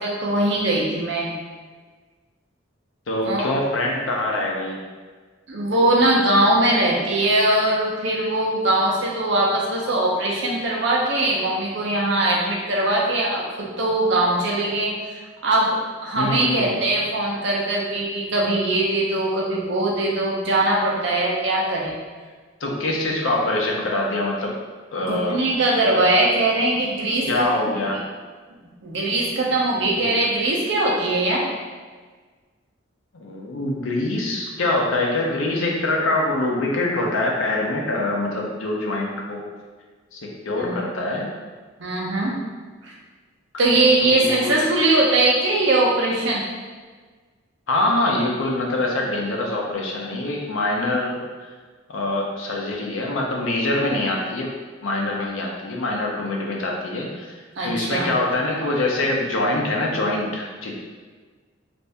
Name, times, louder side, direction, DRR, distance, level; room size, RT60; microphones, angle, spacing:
voice 1, 0.0-1.3 3.2-3.4 5.5-14.9 15.4-15.8 16.0-22.0 25.0-28.0 28.8-31.4 40.6-40.8 41.8-42.3 42.8-42.9 43.6-46.4 57.6-58.1, right 2 dB, 65° right, -3 dB, 0.7 m, -21 dB
voice 2, 3.1-4.8 16.2-16.7 22.6-24.5 24.9-25.4 27.3-28.0 30.0-30.2 33.1-39.4 40.1-41.3 44.0-44.5 47.7-51.2 51.9-54.5 54.8-57.3 57.6-60.7, left 2 dB, 85° left, -1 dB, 0.6 m, -24 dB
2.6 x 2.6 x 3.3 m, 1.4 s
head